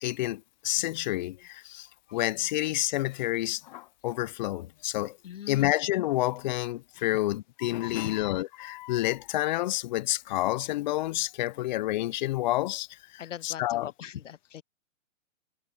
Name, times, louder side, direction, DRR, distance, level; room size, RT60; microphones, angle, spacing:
voice 1, 0.0-5.2 5.5-13.9, left 16 dB, 40° left, 0.5 m, -29 dB
voice 2, 5.2-5.7 7.8-8.2 13.2-14.6, left 10 dB, 75° left, 1.1 m, -40 dB
hypercardioid pair, 130°, 38 cm